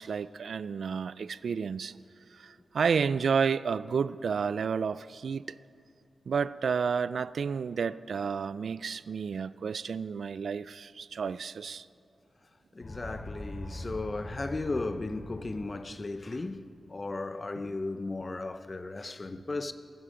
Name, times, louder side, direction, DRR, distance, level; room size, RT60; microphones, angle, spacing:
voice 1, 0.0-1.9 2.3-5.6 6.3-11.9, right 6 dB, 70° right, 0.3 m, -31 dB
voice 2, 12.7-19.7, left 2 dB, 30° left, 0.6 m, -35 dB
sound 1, 12.8-16.4, left 1 dB, 45° left, 3.7 m, -42 dB
17.5 x 15.0 x 5.0 m
wide cardioid pair, 155°, 0 cm